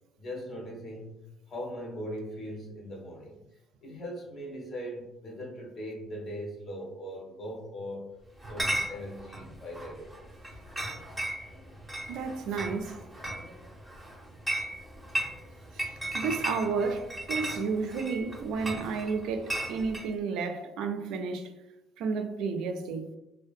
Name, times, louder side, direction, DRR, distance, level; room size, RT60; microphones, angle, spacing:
voice 1, 0.2-1.2 1.5-3.4 3.8-8.2 8.5-10.1, equal, 35° left, 0.7 m, -40 dB
Chatter / Chink clink, 8.4-20.1, right 1 dB, ahead, 0.7 m, -36 dB
voice 2, 12.1-12.9 15.7-21.5 22.0-23.1, right 5 dB, 80° right, 0.3 m, -32 dB
2.6 x 2.1 x 2.5 m
cardioid pair, 155°, 0 cm